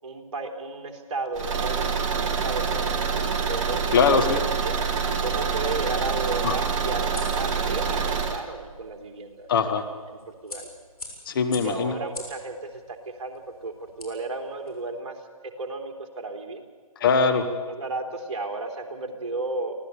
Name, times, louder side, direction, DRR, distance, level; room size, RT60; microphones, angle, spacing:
voice 1, 0.0-3.8 4.0-4.7 5.2-9.5 9.9-10.7 11.6-16.6 17.3-19.8, right 3 dB, 50° right, 4 dB, 3.5 m, -34 dB
Car / Engine, 1.3-8.4, right 6 dB, 20° right, 1.7 m, -26 dB
voice 2, 3.9-4.4 6.4-6.5 9.5-9.8 11.2-11.9 17.0-17.5, left 5 dB, 40° left, 7 dB, 1.8 m, -21 dB
sound 1, 4.9-14.8, left 2 dB, 85° left, 6.8 m, -47 dB
25.0 x 17.0 x 8.4 m, 1.5 s
figure-of-eight pair, 145°, 19 cm